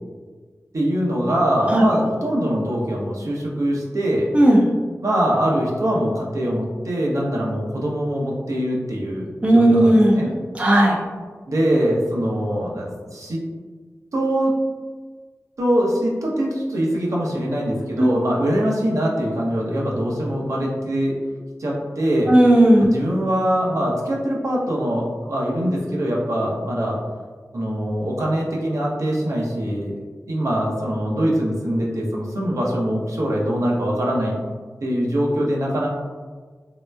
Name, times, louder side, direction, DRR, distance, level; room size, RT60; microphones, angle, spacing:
voice 1, 0.7-4.3 5.0-10.3 11.5-12.9 13.1-13.4 14.1-14.5 15.6-21.1 21.6-22.3 22.8-27.0 27.5-30.0 30.3-34.3 34.8-35.9, equal, 65° right, -4 dB, 0.7 m, -23 dB
voice 2, 4.3-4.7 9.4-10.1 10.5-11.0 18.0-18.1 22.3-22.9, right 1 dB, 20° right, -2 dB, 0.4 m, -14 dB
3.3 x 2.8 x 2.2 m, 1.5 s
wide cardioid pair, 95°, 6 cm